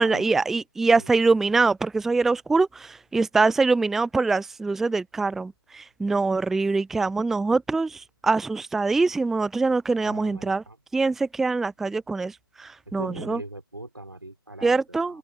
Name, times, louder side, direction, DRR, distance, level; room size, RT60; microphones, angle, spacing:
voice 1, 0.0-10.6 10.9-13.4 14.6-15.2, right 3 dB, 5° right, 0.5 m, -24 dB
voice 2, 10.0-10.8 12.9-15.2, right 1 dB, 85° right, 5.0 m, -40 dB
open air
figure-of-eight pair, 135°, 12 cm